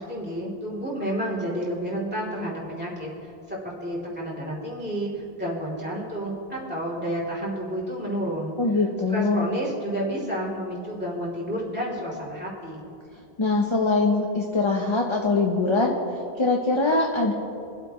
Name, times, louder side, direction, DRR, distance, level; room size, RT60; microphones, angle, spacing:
voice 1, 0.0-8.5 9.1-12.9, equal, 10° right, -6 dB, 3.1 m, -30 dB
voice 2, 8.6-9.5 13.4-16.0 16.4-17.3, left 3 dB, 30° left, 1 dB, 0.8 m, -22 dB
24.0 x 8.2 x 3.1 m, 2.5 s
omnidirectional pair, 1.1 m